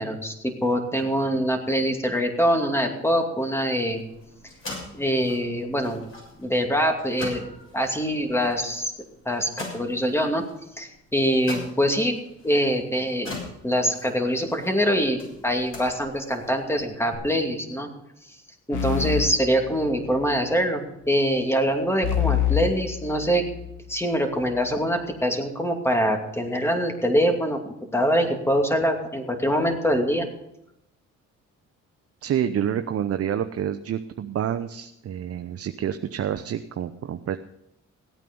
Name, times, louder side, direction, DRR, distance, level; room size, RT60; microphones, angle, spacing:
voice 1, 0.0-4.0 4.9-6.0 6.4-7.4 7.7-8.9 9.3-10.4 10.8-12.2 12.4-13.3 13.6-17.9 18.7-23.4 23.9-27.6 27.9-30.3, equal, 10° left, 4 dB, 2.6 m, -24 dB
sound 1, 3.9-17.1, left 2 dB, 45° left, 6.9 m, -42 dB
sound 2, 18.7-20.3 22.0-23.8, left 11 dB, 75° left, 2.0 m, -27 dB
voice 2, 32.2-37.4, right 9 dB, 50° right, 8 dB, 0.7 m, -28 dB
17.0 x 9.1 x 5.4 m, 0.83 s
cardioid pair, 90°, 30 cm